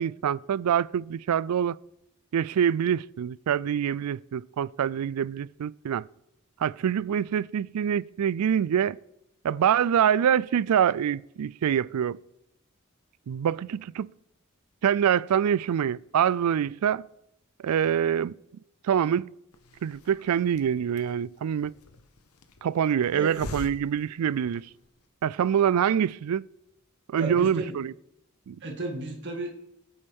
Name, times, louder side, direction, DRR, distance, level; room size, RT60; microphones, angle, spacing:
voice 1, 0.0-1.8 2.3-6.0 6.6-9.0 9.4-12.2 13.3-14.1 14.8-17.1 17.6-18.3 18.8-19.3 19.8-21.7 22.6-24.7 25.2-26.5 27.1-27.9 28.5-28.6, right 8 dB, 90° right, 0.4 m, -25 dB
Hiss, 19.5-25.0, left 2 dB, 80° left, 1.0 m, -46 dB
voice 2, 27.1-27.8 28.6-29.5, right 2 dB, 55° right, 2.0 m, -33 dB
24.0 x 8.6 x 3.6 m
head